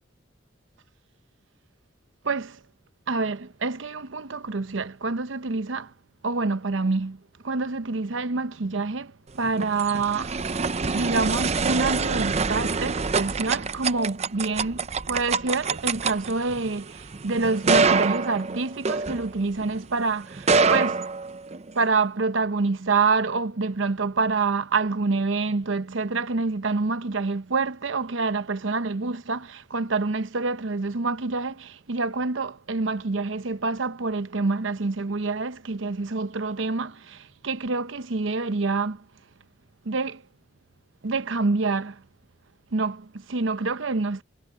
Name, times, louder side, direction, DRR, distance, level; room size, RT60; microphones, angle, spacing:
voice 1, 2.2-2.6 3.1-5.9 6.2-10.4 10.9-21.1 21.7-39.0 39.8-40.2 41.0-42.0 42.7-44.2, right 3 dB, 90° right, 0.8 m, -27 dB
sound 1, 9.4-19.7 20.3-21.8, right 4 dB, 35° right, 0.6 m, -25 dB
head